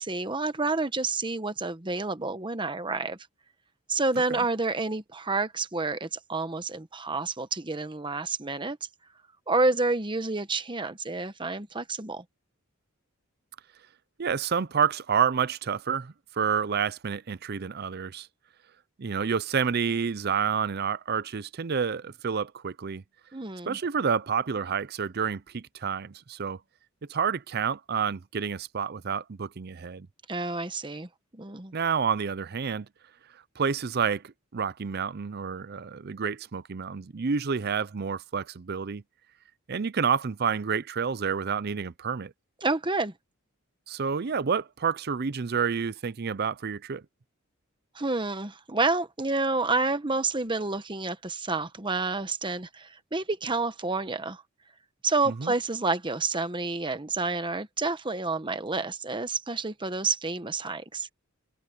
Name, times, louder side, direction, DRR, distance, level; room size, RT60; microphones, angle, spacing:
voice 1, 0.0-3.2 3.9-8.8 9.5-12.2 23.3-23.8 30.3-31.7 42.6-43.1 47.9-54.4 55.0-61.1, right 3 dB, 20° right, 1.1 m, -29 dB
voice 2, 14.2-18.3 19.0-23.0 23.7-26.6 27.1-30.1 31.7-32.9 33.6-39.0 39.7-42.3 43.9-47.0 55.3-55.5, right 6 dB, 50° right, 0.5 m, -29 dB
head